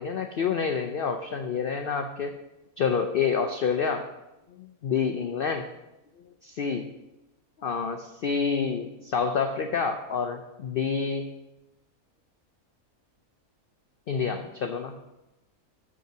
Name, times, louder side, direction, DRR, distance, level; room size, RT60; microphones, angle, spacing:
voice 1, 0.0-2.4 2.8-4.1 4.5-5.7 6.4-6.9 7.6-11.3 14.1-15.0, left 6 dB, 65° left, 5 dB, 0.5 m, -28 dB
6.8 x 5.3 x 6.5 m, 0.96 s
omnidirectional pair, 1.5 m